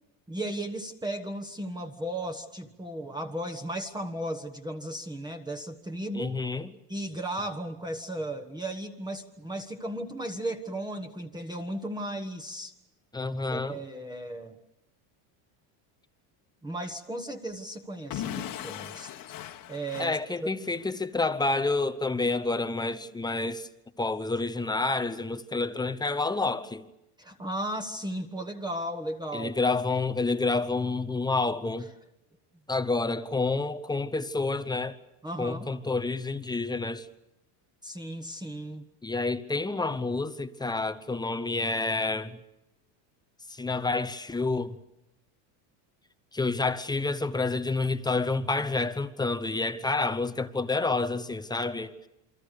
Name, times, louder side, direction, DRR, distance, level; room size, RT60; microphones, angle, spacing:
voice 1, 0.3-6.3 6.9-12.7 13.5-14.6 16.6-19.1 19.7-20.5 27.2-29.5 35.2-35.7 37.8-38.9, right 1 dB, 10° right, 1.3 m, -35 dB
voice 2, 6.1-6.7 13.1-13.8 20.0-23.7 24.0-26.9 29.3-31.9 32.7-35.0 35.4-37.1 39.0-42.4 43.5-44.8 46.3-51.9, left 3 dB, 10° left, 0.8 m, -29 dB
Explosion / Shatter, 18.1-20.9, left 11 dB, 40° left, 1.5 m, -38 dB
28.5 x 23.0 x 6.7 m
cardioid pair, 135°, 49 cm